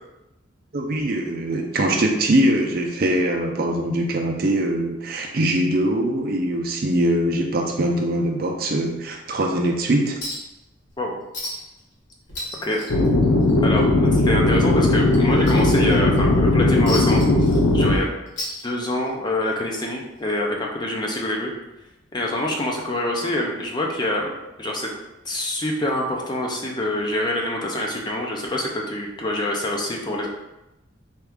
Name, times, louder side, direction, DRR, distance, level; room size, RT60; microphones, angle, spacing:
voice 1, 0.7-10.2, right 1 dB, 50° right, 1 dB, 0.5 m, -22 dB
Chink clink, 10.2-10.6 10.9-11.0 11.3-11.8 12.1-13.8 14.1-14.3 14.8-16.2 16.9-18.0 18.3-19.2 20.3-20.4, left 1 dB, 65° left, 1.2 m, -33 dB
sound 1, 12.9-18.0, left 2 dB, 85° left, 0.5 m, -18 dB
voice 2, 13.6-17.2 17.7-18.1 18.6-21.5 22.1-24.3 24.6-24.9 25.3-30.3, left 1 dB, 20° left, -1 dB, 0.5 m, -26 dB
4.3 x 2.4 x 3.5 m, 0.95 s
head